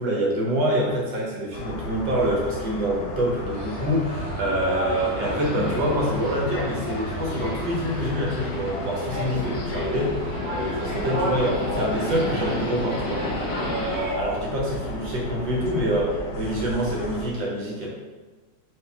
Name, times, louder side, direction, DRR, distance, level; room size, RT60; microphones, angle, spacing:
voice 1, 0.0-17.9, equal, 90° right, -3 dB, 1.7 m, -26 dB
sound 1, 1.5-17.3, left 1 dB, 70° left, 1.1 m, -35 dB
sound 2, 3.5-14.2, right 1 dB, 55° right, 0.6 m, -34 dB
Subway metro underground, 4.9-14.0, left 3 dB, 90° left, 1.4 m, -33 dB
4.7 x 2.8 x 3.4 m, 1.3 s
omnidirectional pair, 1.9 m